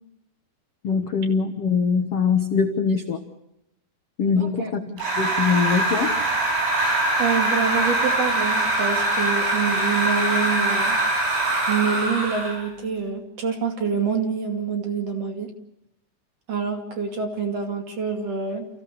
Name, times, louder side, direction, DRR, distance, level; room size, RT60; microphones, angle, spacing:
voice 1, 0.8-3.2 4.2-4.8 5.1-6.1, left 5 dB, 75° left, 3 dB, 1.3 m, -22 dB
voice 2, 4.4-4.7 7.2-11.0 11.7-15.5 16.5-18.7, right 6 dB, 40° right, 3 dB, 3.0 m, -26 dB
sound 1, 5.0-12.6, right 2 dB, 85° right, 7.4 m, -23 dB
29.0 x 16.0 x 6.9 m, 0.87 s
omnidirectional pair, 4.9 m